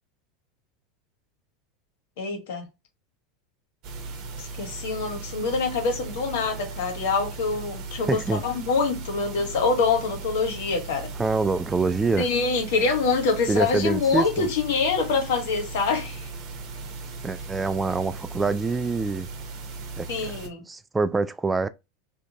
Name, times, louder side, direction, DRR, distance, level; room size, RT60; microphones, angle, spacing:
voice 1, 2.2-2.7 4.4-11.1 12.2-16.3 20.1-20.6, left 4 dB, 70° left, 1.1 m, -25 dB
sound 1, 3.8-20.5, right 3 dB, 50° right, 0.8 m, -37 dB
voice 2, 8.1-8.4 11.2-12.3 13.5-14.5 17.2-19.3 20.0-20.3 20.7-21.7, right 3 dB, 15° right, 0.3 m, -25 dB
3.4 x 2.5 x 2.8 m
hypercardioid pair, 100°, 0 cm